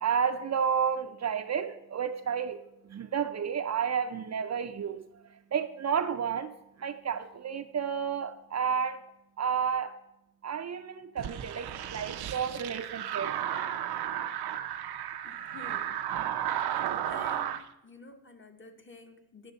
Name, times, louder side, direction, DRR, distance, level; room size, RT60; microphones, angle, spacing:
voice 1, 0.0-2.6 2.9-5.0 5.5-6.5 6.8-9.0 9.4-9.9 10.4-13.3, right 7 dB, 45° right, 0.5 m, -31 dB
sound 1, 11.2-17.6, right 10 dB, 90° right, 0.6 m, -33 dB
voice 2, 15.2-16.0 17.1-19.5, left 3 dB, 30° left, 0.9 m, -50 dB
9.5 x 6.2 x 3.9 m
cardioid pair, 95°, 37 cm